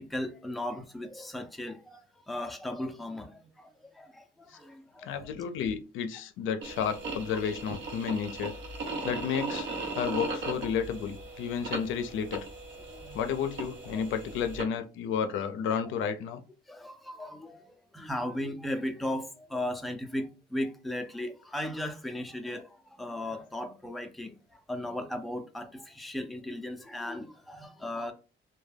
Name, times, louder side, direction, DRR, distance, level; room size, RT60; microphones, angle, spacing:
voice 1, 0.0-5.3 12.9-13.2 13.9-14.1 16.7-28.1, left 1 dB, ahead, 0.4 m, -37 dB
voice 2, 5.1-8.6 9.0-9.7 10.0-12.5 13.1-16.4, left 7 dB, 80° left, 0.4 m, -32 dB
sound 1, 6.6-14.6, right 3 dB, 70° right, 0.8 m, -38 dB
2.2 x 2.2 x 3.2 m
cardioid pair, 90°, 20 cm